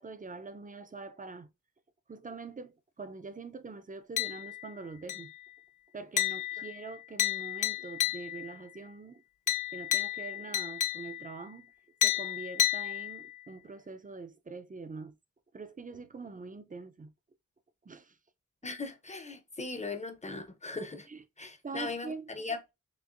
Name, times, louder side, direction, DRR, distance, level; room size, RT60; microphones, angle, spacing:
voice 1, 0.0-1.5 2.1-5.3 5.9-9.2 9.7-11.7 12.0-15.1 15.5-17.1 17.8-18.2 21.1-22.3, right 4 dB, 25° right, 0.5 m, -44 dB
sound 1, 4.2-4.7 5.1-5.5 6.2-8.6 9.5-11.4 12.0-13.4, left 11 dB, 75° left, 0.6 m, -32 dB
voice 2, 18.6-21.1 21.4-22.6, left 3 dB, 25° left, 0.7 m, -38 dB
6.3 x 2.5 x 2.5 m
wide cardioid pair, 100°, 30 cm